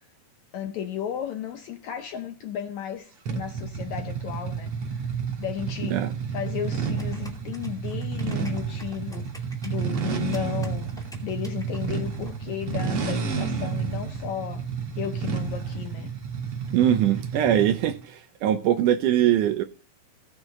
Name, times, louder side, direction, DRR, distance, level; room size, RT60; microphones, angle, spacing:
voice 1, 0.5-6.0 6.3-14.6 15.0-16.1, left 9 dB, 75° left, 1.7 m, -34 dB
sound 1, 3.3-17.9, right 6 dB, 50° right, 1.9 m, -31 dB
sound 2, 7.0-12.3, equal, ahead, 1.8 m, -48 dB
voice 2, 16.7-19.6, right 11 dB, 75° right, 1.9 m, -22 dB
17.5 x 6.2 x 3.7 m
omnidirectional pair, 4.1 m